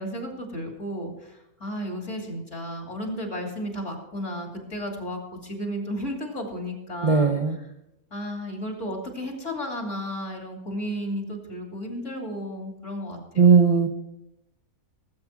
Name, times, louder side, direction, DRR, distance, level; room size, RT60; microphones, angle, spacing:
voice 1, 0.0-7.3 8.1-13.6, equal, 55° left, 1 dB, 3.2 m, -33 dB
voice 2, 7.0-7.6 13.4-13.9, right 5 dB, 35° right, 3 dB, 0.6 m, -17 dB
18.5 x 8.6 x 4.7 m, 0.86 s
omnidirectional pair, 1.6 m